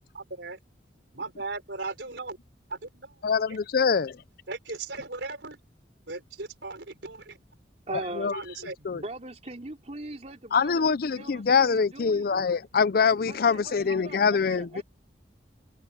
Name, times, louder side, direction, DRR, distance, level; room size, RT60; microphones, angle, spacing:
voice 1, 0.1-0.6 1.1-2.4 2.7-3.1 3.9-4.0 4.5-5.6 6.1-7.4 8.3-8.9, right 3 dB, 85° right, 4.1 m, -37 dB
voice 2, 3.2-4.2 7.9-8.4 8.9-9.0 10.5-14.8, left 5 dB, 55° left, 0.5 m, -24 dB
voice 3, 7.9-8.3 8.9-10.9 11.2-12.2 13.3-14.8, right 2 dB, 40° right, 3.8 m, -40 dB
open air
head